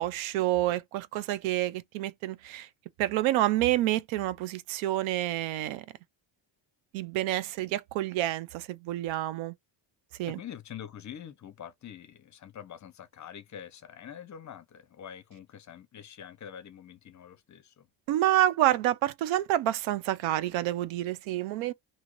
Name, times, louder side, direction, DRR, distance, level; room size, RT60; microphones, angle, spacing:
voice 1, 0.0-2.7 3.0-5.8 6.9-9.5 10.2-10.4 18.1-21.7, right 14 dB, 90° right, 0.6 m, -28 dB
voice 2, 10.3-17.9, left 9 dB, 40° left, 0.7 m, -45 dB
2.8 x 2.5 x 3.0 m
cardioid pair, 110°, 46 cm